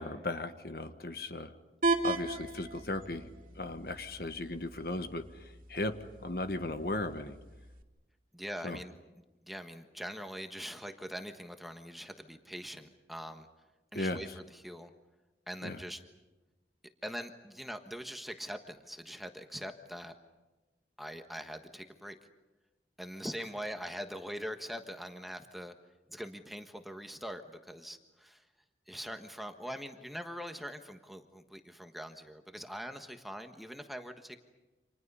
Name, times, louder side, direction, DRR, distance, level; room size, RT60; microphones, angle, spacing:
voice 1, 0.0-1.5 2.0-3.3 3.6-5.9 6.2-7.4 8.6-8.8 13.9-14.2 15.6-15.8, left 2 dB, 55° left, 9 dB, 1.4 m, -36 dB
sound 1, 1.8-7.8, right 2 dB, 50° right, 2.5 m, -37 dB
voice 2, 8.3-13.5 13.9-14.9 15.5-16.0 17.0-20.2 21.0-22.2 23.0-25.7 26.1-28.4 28.9-34.4, equal, ahead, 6 dB, 1.3 m, -43 dB
30.0 x 27.0 x 5.6 m, 1.1 s
head